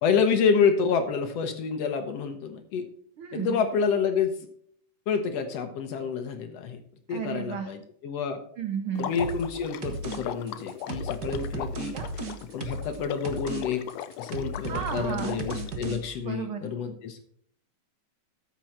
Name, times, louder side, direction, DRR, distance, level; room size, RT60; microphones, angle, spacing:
voice 1, 0.0-2.9 3.3-4.4 5.1-6.8 7.1-8.4 9.0-12.0 12.5-13.8 14.2-17.2, left 6 dB, 65° left, 7 dB, 1.7 m, -28 dB
voice 2, 3.2-3.6 7.1-7.7 8.6-9.1 11.9-12.1 14.6-15.4 16.2-16.7, right 7 dB, 85° right, 6 dB, 1.1 m, -33 dB
Water / Liquid, 8.9-15.7, left 11 dB, 85° left, 1.5 m, -39 dB
sound 1, 9.2-9.5 9.8-10.2 10.5-13.0 13.2-13.6 13.9-16.0, right 2 dB, 50° right, 1.2 m, -34 dB
13.5 x 6.2 x 4.2 m, 0.62 s
omnidirectional pair, 3.6 m